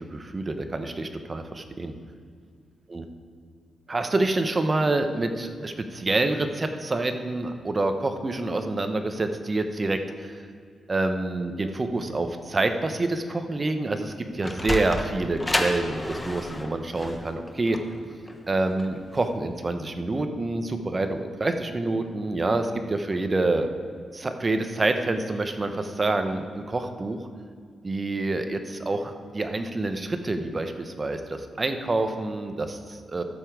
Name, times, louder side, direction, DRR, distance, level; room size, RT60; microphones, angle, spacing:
voice 1, 0.0-1.9 2.9-3.1 3.9-10.4 10.9-17.8 18.5-23.7 24.1-27.2 27.8-33.2, right 2 dB, 30° right, 7 dB, 0.9 m, -27 dB
Sliding door, 14.1-19.3, left 1 dB, 15° left, 1.0 m, -31 dB
12.5 x 6.9 x 4.7 m, 2.1 s
cardioid pair, 90°, 0 cm